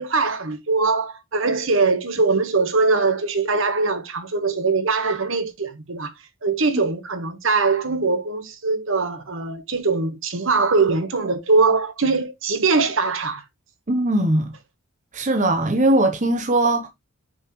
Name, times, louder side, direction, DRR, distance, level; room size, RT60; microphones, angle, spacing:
voice 1, 0.0-6.1 6.4-13.4, right 4 dB, 60° right, 1.2 m, -22 dB
voice 2, 13.9-14.5 15.1-16.9, right 1 dB, 35° right, 0.9 m, -20 dB
6.5 x 6.0 x 3.0 m
head